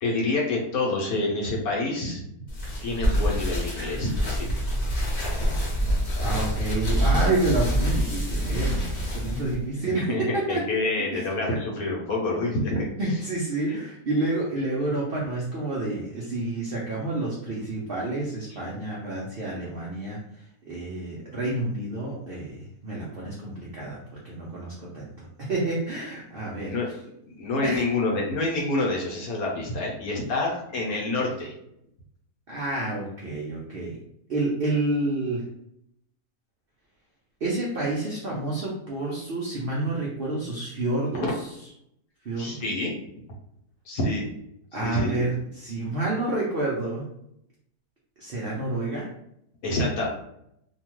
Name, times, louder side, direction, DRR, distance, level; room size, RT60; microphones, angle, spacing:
voice 1, 0.0-2.2 2.8-4.5 10.0-12.9 13.7-13.8 18.5-18.6 26.6-26.9 27.3-31.5 41.2-41.3 42.4-42.9 43.9-44.3 44.7-45.3 49.6-50.1, left 2 dB, 65° left, -2 dB, 1.1 m, -27 dB
sound 1, 2.5-9.5, equal, 40° left, 0.9 m, -26 dB
voice 2, 6.1-10.8 13.0-20.2 20.6-26.7 27.6-27.9 32.5-34.0 34.3-35.4 37.4-41.3 42.2-42.7 44.7-47.0 48.2-49.1, right 2 dB, 70° right, -4 dB, 0.5 m, -29 dB
2.8 x 2.3 x 3.0 m, 0.76 s
omnidirectional pair, 1.8 m